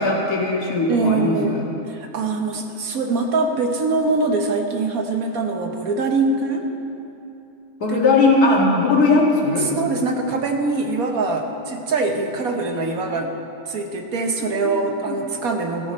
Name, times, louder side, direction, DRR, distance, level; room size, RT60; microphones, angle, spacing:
voice 1, 0.0-1.6 7.8-9.7 14.4-14.7 15.1-15.2, left 3 dB, 65° left, -2 dB, 2.2 m, -19 dB
voice 2, 0.9-1.6 1.9-6.7 7.9-8.0 9.6-13.3 13.6-15.9, right 3 dB, 60° right, 3 dB, 1.4 m, -23 dB
15.0 x 13.5 x 4.2 m, 2.9 s
omnidirectional pair, 1.7 m